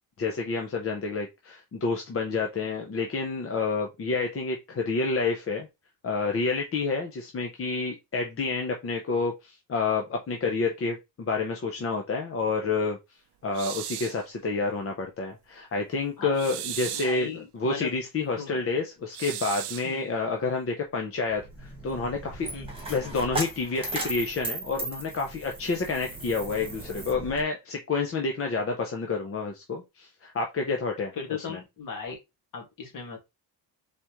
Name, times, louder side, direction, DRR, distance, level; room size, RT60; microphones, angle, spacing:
voice 1, 0.2-5.7 6.0-13.0 13.4-22.5 22.9-31.1 31.5-31.6, left 4 dB, 35° left, 0.7 m, -29 dB
sound 1, 13.5-14.2 16.4-17.2 19.1-19.9, right 12 dB, 70° right, 0.6 m, -36 dB
voice 2, 16.9-17.9 18.4-18.6 19.8-20.1 22.5-22.7 31.1-32.2 32.5-33.2, left 6 dB, 50° left, 2.0 m, -37 dB
Coin (dropping), 21.3-27.4, right 2 dB, 15° right, 1.5 m, -36 dB
4.1 x 3.6 x 3.0 m
cardioid pair, 155°, 42 cm